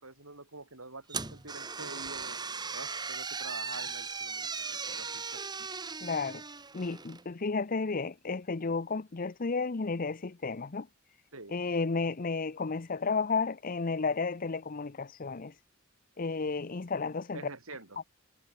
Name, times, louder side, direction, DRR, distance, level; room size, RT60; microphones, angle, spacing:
voice 1, 0.0-2.4 2.7-5.4 11.3-11.5 17.3-18.0, right 3 dB, 85° right, 6.4 m, -46 dB
sound 1, 1.1-7.3, right 5 dB, 20° right, 1.6 m, -38 dB
voice 2, 6.0-6.4 6.7-10.9 11.5-15.5 16.2-17.4, left 4 dB, 40° left, 0.7 m, -32 dB
head